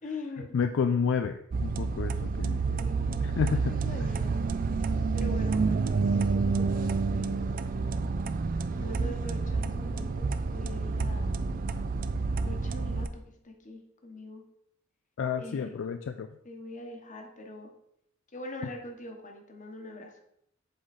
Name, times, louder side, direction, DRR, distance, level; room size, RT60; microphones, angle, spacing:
voice 1, 0.0-0.5 2.6-3.3 3.7-4.4 5.1-7.4 8.7-11.4 12.4-14.4 15.4-15.7 16.4-17.7 18.3-20.1, left 2 dB, 40° left, 3 dB, 1.1 m, -43 dB
voice 2, 0.5-2.6 3.2-3.7 4.0-4.1 15.2-16.3, left 6 dB, 65° left, 8 dB, 0.3 m, -30 dB
sound 1, 1.5-13.1, right 4 dB, 40° right, 0.4 m, -29 dB
7.8 x 3.8 x 4.2 m, 0.75 s
head